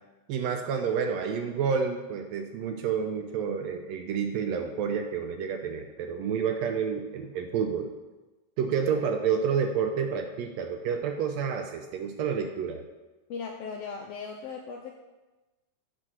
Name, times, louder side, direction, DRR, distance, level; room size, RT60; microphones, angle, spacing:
voice 1, 0.3-7.9 8.6-12.8, right 6 dB, 80° right, 5 dB, 1.6 m, -29 dB
voice 2, 13.3-14.9, left 5 dB, 85° left, 2 dB, 1.4 m, -37 dB
8.7 x 3.8 x 6.1 m, 1.1 s
omnidirectional pair, 3.4 m